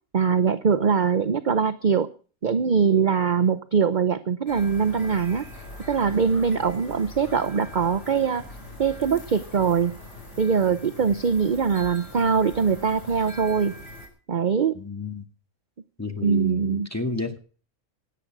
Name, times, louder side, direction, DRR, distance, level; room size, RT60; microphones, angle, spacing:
voice 1, 0.1-2.1 2.4-5.5 5.9-8.4 8.8-9.9 10.4-13.7 14.3-14.8 16.2-16.9, right 6 dB, 40° right, 10 dB, 0.7 m, -22 dB
sound 1, 4.5-14.1, left 1 dB, 50° left, 4.7 m, -42 dB
voice 2, 14.7-15.3 16.0-17.4, left 2 dB, 10° left, 6 dB, 1.9 m, -31 dB
17.0 x 9.9 x 6.0 m, 0.39 s
omnidirectional pair, 1.5 m